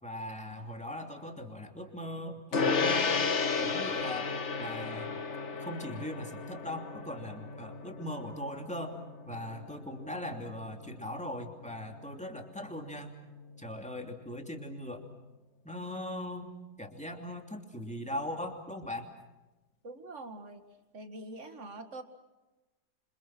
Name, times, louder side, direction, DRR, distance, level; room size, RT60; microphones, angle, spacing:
voice 1, 0.0-3.1 3.6-5.2 5.6-9.0 9.3-13.1 13.6-15.0 15.6-19.1, left 1 dB, 5° left, 3 dB, 2.9 m, -40 dB
Gong, 2.5-12.2, left 4 dB, 45° left, 1.6 m, -34 dB
voice 2, 19.8-20.6 20.9-22.0, right 2 dB, 45° right, 7 dB, 2.2 m, -44 dB
27.5 x 26.5 x 6.1 m, 1.1 s
omnidirectional pair, 1.8 m